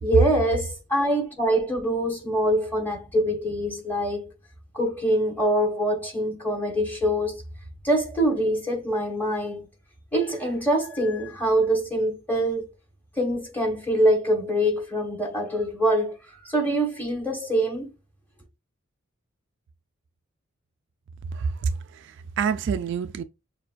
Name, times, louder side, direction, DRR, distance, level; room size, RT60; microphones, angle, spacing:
voice 1, 0.0-4.3 4.7-7.3 7.8-9.7 10.1-12.6 13.2-17.9, right 1 dB, 10° left, 1.3 m, -24 dB
voice 2, 21.3-23.2, right 6 dB, 60° right, 0.3 m, -28 dB
6.7 x 2.3 x 2.5 m
head